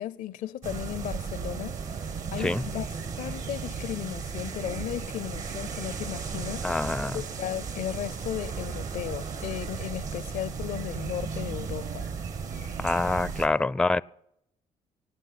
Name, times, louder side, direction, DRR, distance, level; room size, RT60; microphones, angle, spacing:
voice 1, 0.0-2.9 3.2-6.7 7.1-12.1 13.6-13.7, left 12 dB, 70° left, 0.5 m, -35 dB
sound 1, 0.6-13.5, right 5 dB, 60° right, 1.6 m, -35 dB
voice 2, 6.6-7.2 12.8-14.0, left 2 dB, 5° left, 0.4 m, -26 dB
24.5 x 9.1 x 4.2 m
supercardioid pair, 65°, 14 cm